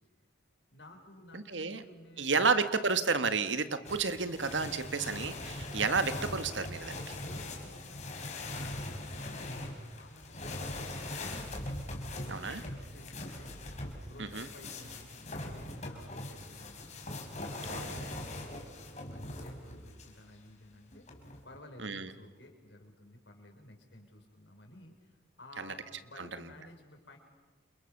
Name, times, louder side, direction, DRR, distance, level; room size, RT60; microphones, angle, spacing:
voice 1, 0.7-2.7 6.9-9.6 9.9-11.5 12.2-13.5 14.0-16.9 17.4-21.1 21.4-27.2, left 1 dB, 70° left, 3 dB, 5.5 m, -54 dB
voice 2, 1.3-1.8 2.2-7.2 12.3-12.6 14.2-14.5 17.7-18.0 21.8-22.1 25.6-25.7 26.2-26.3, right 4 dB, 85° right, 10 dB, 1.8 m, -31 dB
sound 1, 3.8-20.2 20.9-21.6, left 2 dB, 40° left, 4.7 m, -41 dB
29.0 x 28.5 x 6.8 m, 1.3 s
head